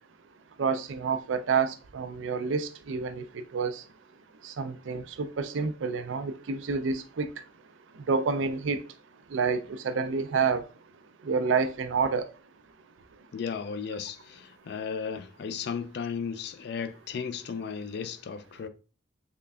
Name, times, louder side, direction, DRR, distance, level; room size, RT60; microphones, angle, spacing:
voice 1, 0.6-3.2 3.5-3.8 4.4-7.3 8.1-8.8 9.3-10.6 11.2-12.3, right 5 dB, 85° right, 0.4 m, -28 dB
voice 2, 13.3-18.7, left 6 dB, 60° left, 0.3 m, -35 dB
3.8 x 3.2 x 2.3 m
head